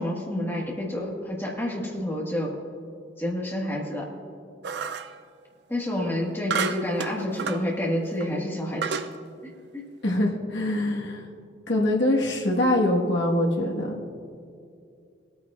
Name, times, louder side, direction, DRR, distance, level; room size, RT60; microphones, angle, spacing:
voice 1, 0.0-2.6 3.2-4.1 5.7-9.0 9.7-9.9, left 1 dB, 10° left, -3 dB, 1.5 m, -29 dB
sound 1, 4.6-5.2 6.5-7.7 8.2-8.3 8.8-9.1, right 6 dB, 60° right, 0.4 m, -30 dB
voice 2, 10.0-11.3 11.7-13.9, left 1 dB, 70° left, -1 dB, 1.4 m, -24 dB
18.5 x 9.2 x 2.4 m, 2.4 s
head